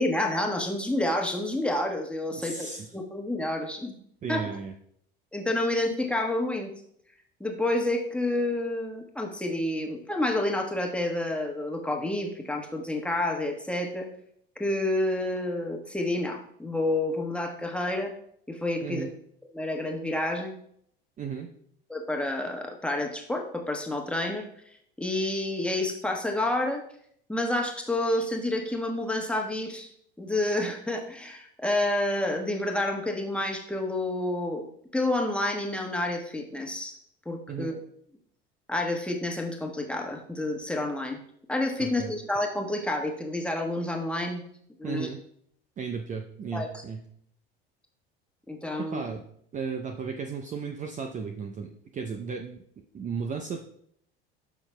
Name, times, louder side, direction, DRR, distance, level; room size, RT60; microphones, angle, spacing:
voice 1, 0.0-2.6 2.9-3.9 4.3-4.4 5.3-6.7 7.4-14.1 14.6-18.1 18.5-19.0 19.5-20.6 21.9-24.4 25.0-26.8 27.3-29.9 30.2-34.6 34.9-36.9 37.2-37.8 38.7-41.2 41.5-44.4 44.8-45.1 46.5-46.7 48.5-49.0, left 1 dB, 5° left, 2 dB, 1.3 m, -29 dB
voice 2, 2.3-2.9 4.2-4.7 18.8-19.1 21.2-21.5 37.5-37.7 41.8-42.1 44.8-45.2 45.8-47.0 48.8-49.2 49.5-52.6 52.9-53.6, right 5 dB, 25° right, 4 dB, 0.6 m, -35 dB
12.5 x 5.6 x 2.2 m, 0.69 s
figure-of-eight pair, 70°, 29 cm